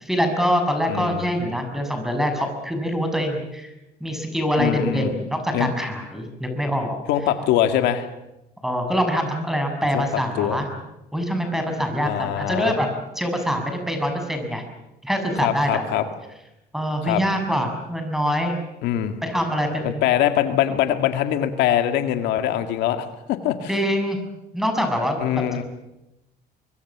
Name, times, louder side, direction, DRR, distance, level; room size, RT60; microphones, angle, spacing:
voice 1, 0.0-3.7 4.0-7.0 8.6-10.7 11.1-14.6 15.0-15.9 16.7-18.6 19.2-20.0 23.7-24.2 24.5-25.6, equal, ahead, 5 dB, 6.8 m, -24 dB
voice 2, 0.9-1.3 4.6-5.1 5.5-5.7 7.1-8.1 9.9-10.6 12.0-12.8 15.4-16.1 17.0-17.2 18.8-19.2 19.8-23.7 25.2-25.6, left 11 dB, 90° left, 7 dB, 2.1 m, -23 dB
24.5 x 24.0 x 7.4 m, 0.91 s
cardioid pair, 110°, 17 cm